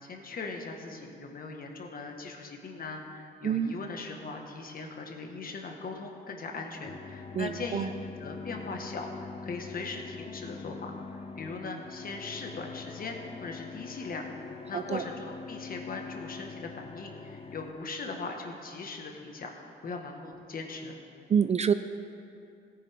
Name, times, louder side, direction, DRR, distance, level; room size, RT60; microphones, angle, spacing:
voice 1, 0.0-7.9 8.2-21.0, left 3 dB, 45° left, 2 dB, 1.5 m, -40 dB
voice 2, 3.4-3.8 7.3-7.9 14.7-15.0 21.3-21.7, right 7 dB, 35° right, 11 dB, 0.4 m, -27 dB
sound 1, 6.8-17.7, left 5 dB, 30° left, 0.6 m, -43 dB
17.0 x 10.0 x 3.6 m, 2.7 s
cardioid pair, 90°, 20 cm